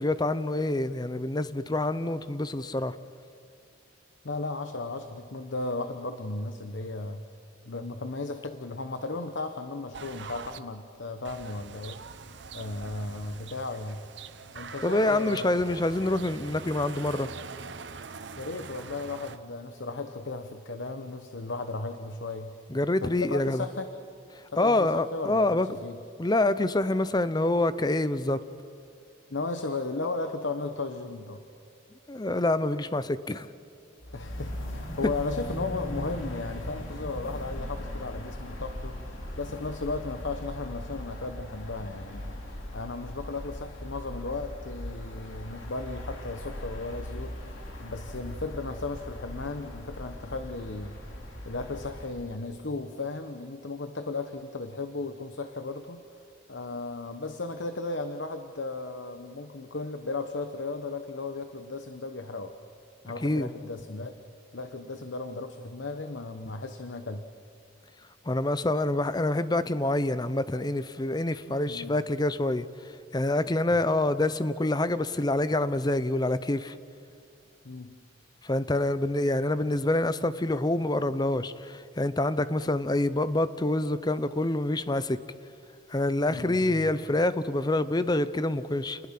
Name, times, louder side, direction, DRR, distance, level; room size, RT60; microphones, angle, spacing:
voice 1, 0.0-3.0 14.8-17.3 22.7-23.6 24.3-25.7 26.2-28.4 32.1-33.5 63.2-63.5 68.3-72.7 73.1-76.8 78.4-85.2 85.9-89.0, left 2 dB, 20° left, 14 dB, 0.6 m, -26 dB
voice 2, 4.2-7.3 7.6-12.0 12.5-14.1 14.5-15.6 18.4-22.6 23.0-23.9 24.5-26.0 29.3-31.4 34.1-39.0 39.3-51.0 51.4-56.0 56.5-62.5 63.0-64.2 64.5-67.2 71.7-72.0 77.6-78.0 86.3-86.9, left 3 dB, 70° left, 8 dB, 1.0 m, -35 dB
sound 1, 9.9-10.6 11.2-19.4, right 5 dB, 60° right, 0.8 m, -43 dB
sound 2, 34.0-52.3, left 1 dB, 90° left, 2.9 m, -39 dB
29.0 x 20.0 x 6.0 m, 2.4 s
head